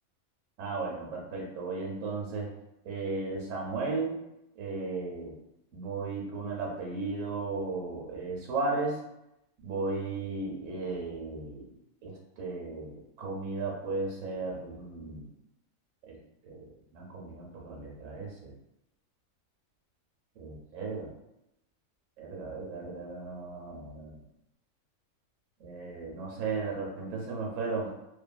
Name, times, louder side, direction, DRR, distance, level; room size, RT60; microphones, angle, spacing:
voice 1, 0.6-2.5 2.8-4.2 4.6-5.4 5.7-9.0 9.6-11.7 12.0-15.2 16.1-16.2 16.5-16.6 16.9-18.5 20.4-21.1 22.2-24.2 25.6-27.9, right 3 dB, 70° right, -2 dB, 1.0 m, -35 dB
2.7 x 2.5 x 2.2 m, 0.87 s
omnidirectional pair, 1.4 m